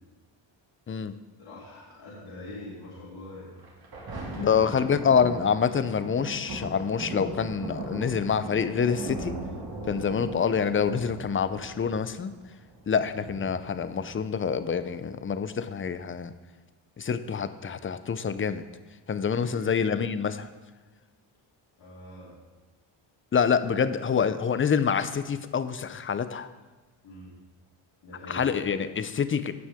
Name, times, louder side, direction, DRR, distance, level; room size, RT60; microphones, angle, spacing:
voice 1, 1.4-3.6 4.3-4.9 19.4-19.7 21.8-22.4 27.0-27.3 28.0-28.5, left 1 dB, 70° left, -8 dB, 3.3 m, -43 dB
Thunder, 3.6-14.6 15.2-15.3, right 2 dB, 45° right, 2.8 m, -39 dB
voice 2, 4.4-9.4 9.9-12.3 12.9-16.3 17.0-18.6 19.1-20.5 23.3-26.5 28.3-29.5, left 6 dB, 25° left, 12 dB, 0.6 m, -26 dB
16.5 x 6.1 x 3.6 m, 1.3 s
cardioid pair, 85°, 48 cm